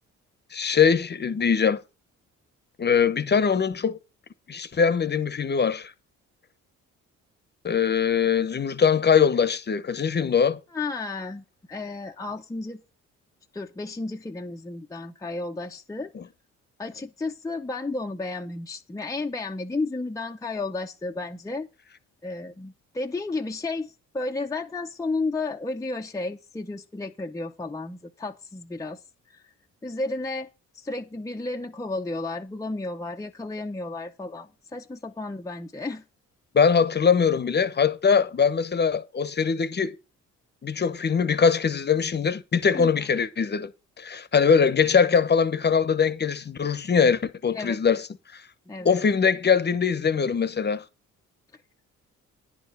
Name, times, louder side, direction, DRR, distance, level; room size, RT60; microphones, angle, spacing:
voice 1, 0.5-1.8 2.8-4.0 4.5-5.9 7.6-10.6 16.1-16.2 36.5-40.0 40.6-43.7 44.0-48.0 48.3-48.4 48.8-50.8, left 6 dB, 35° left, 0.9 m, -22 dB
voice 2, 10.7-12.8 13.5-16.1 16.8-21.7 22.2-29.0 29.3-29.4 29.8-30.5 30.7-36.0 42.7-42.9 47.5-47.8 48.7-49.0, left 3 dB, 10° left, 0.7 m, -32 dB
10.0 x 4.8 x 7.4 m
cardioid pair, 90°, 30 cm